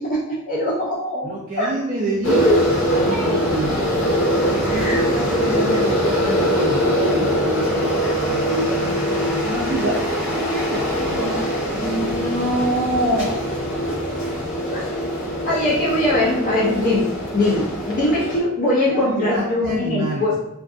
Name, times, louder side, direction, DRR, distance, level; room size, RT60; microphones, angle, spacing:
voice 1, 0.0-1.7 2.3-2.6 2.8-3.4 3.7-4.1 4.7-5.0 8.8-8.9 10.9-11.3 11.7-13.4 14.7-14.9 15.5-20.4, left 1 dB, 40° left, -5 dB, 0.4 m, -22 dB
voice 2, 1.2-2.5 2.9-3.9 4.4-8.0 8.3-11.5 18.9-20.3, right 1 dB, 40° right, -5 dB, 0.4 m, -28 dB
sound 1, 2.2-18.4, equal, 65° left, 0.9 m, -22 dB
2.5 x 2.4 x 2.3 m, 0.79 s
head